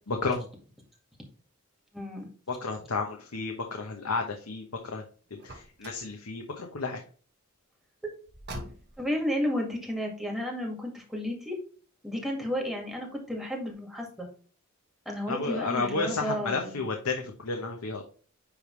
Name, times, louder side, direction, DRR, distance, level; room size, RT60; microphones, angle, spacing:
voice 1, 0.1-0.5 2.5-5.0 5.3-7.0 15.3-18.0, left 3 dB, 80° left, 2 dB, 1.1 m, -32 dB
voice 2, 1.9-2.3 9.0-11.6 12.0-14.3 15.1-16.8, equal, ahead, 0 dB, 2.1 m, -32 dB
Car, 5.4-6.1 8.3-9.1, right 1 dB, 50° right, 2.2 m, -42 dB
9.9 x 3.5 x 3.2 m, 0.39 s
head